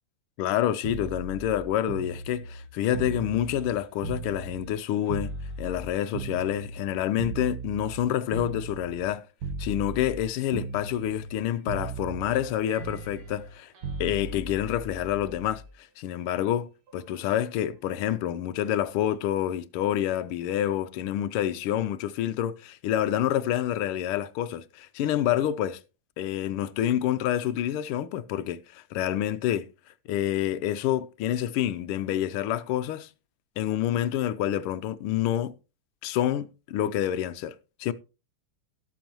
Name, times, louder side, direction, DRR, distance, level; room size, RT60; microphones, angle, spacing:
voice 1, 0.4-5.3 5.6-9.2 9.6-13.7 14.0-25.8 26.2-29.7 30.1-33.1 33.6-35.5 36.0-37.5 37.8-37.9, left 11 dB, 85° left, 1.6 m, -28 dB
sound 1, 0.8-4.8 5.1-9.1 9.4-10.2 10.5-11.4 11.7-15.7 16.9-17.1, right 4 dB, 90° right, 2.8 m, -37 dB
17.5 x 6.8 x 3.0 m
omnidirectional pair, 2.4 m